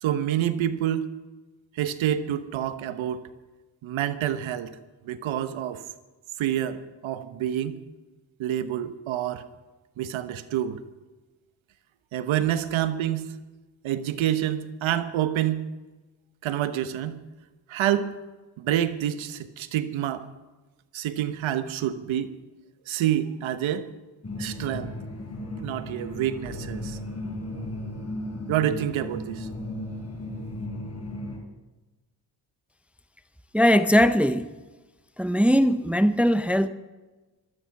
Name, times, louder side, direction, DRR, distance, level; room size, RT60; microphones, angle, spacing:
voice 1, 0.0-1.1 1.8-3.2 3.8-4.7 5.0-5.8 6.4-7.8 8.4-9.4 10.0-10.8 12.1-13.2 13.8-15.6 16.4-17.2 17.7-18.1 18.6-20.3 20.9-22.3 22.9-23.9 24.4-24.9 25.6-27.0 28.5-29.5, right 11 dB, 80° right, 1.2 m, -27 dB
sound 1, 24.2-31.4, left 1 dB, 30° left, 4.3 m, -35 dB
voice 2, 33.5-34.5 35.2-36.7, equal, 5° right, 0.8 m, -20 dB
16.5 x 13.0 x 6.0 m
supercardioid pair, 55°, 46 cm